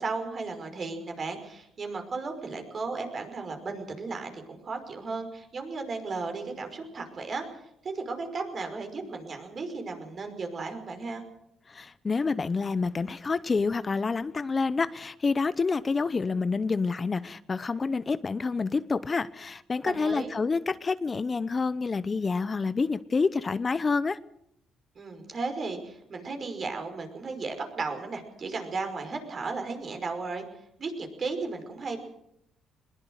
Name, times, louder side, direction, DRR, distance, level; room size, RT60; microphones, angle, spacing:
voice 1, 0.0-7.5 7.8-11.2 19.8-20.3 25.0-30.4 30.8-32.0, right 4 dB, 45° right, 5 dB, 5.5 m, -35 dB
voice 2, 11.7-24.2, left 4 dB, 30° left, 15 dB, 0.8 m, -28 dB
21.5 x 20.0 x 6.5 m, 0.76 s
cardioid pair, 90°, 0 cm